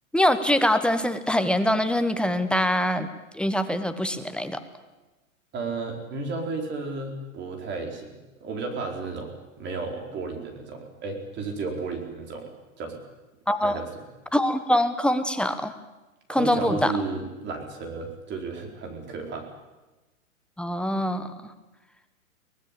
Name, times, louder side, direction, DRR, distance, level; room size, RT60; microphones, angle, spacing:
voice 1, 0.1-3.1 3.3-4.6 13.5-13.8 14.3-15.7 16.3-16.9 20.6-21.5, left 1 dB, ahead, 9 dB, 1.1 m, -24 dB
voice 2, 5.5-12.4 12.8-13.0 13.6-13.9 16.3-19.5, right 3 dB, 25° right, 3 dB, 4.5 m, -33 dB
23.0 x 19.0 x 8.6 m, 1.1 s
hypercardioid pair, 125°, 41 cm